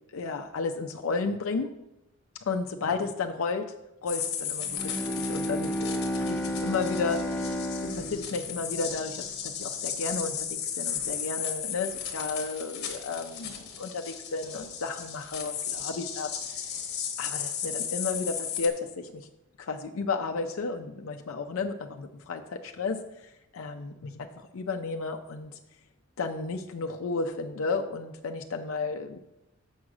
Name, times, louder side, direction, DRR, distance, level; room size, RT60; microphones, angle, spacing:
voice 1, 0.1-1.7 2.4-3.7 4.0-16.8 17.2-19.3 19.6-25.6 26.2-29.2, left 4 dB, 75° left, 5 dB, 0.5 m, -33 dB
sound 1, 4.1-18.7, left 8 dB, 50° left, 1.0 m, -35 dB
Bowed string instrument, 4.7-9.5, equal, 10° left, 0.4 m, -32 dB
6.3 x 6.2 x 4.8 m, 0.92 s
head